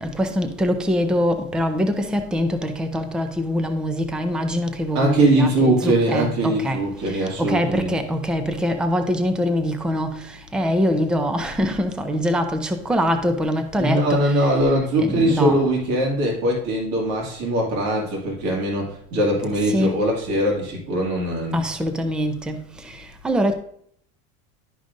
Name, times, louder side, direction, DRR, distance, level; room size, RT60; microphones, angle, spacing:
voice 1, 0.0-6.8 7.4-10.1 10.5-14.3 15.0-15.6 19.7-19.9 21.5-22.6 23.2-23.5, equal, 5° right, 0.4 m, -23 dB
voice 2, 4.9-7.9 13.8-21.6, right 1 dB, 65° right, 2.3 m, -21 dB
11.5 x 5.0 x 2.6 m
cardioid pair, 150°, 29 cm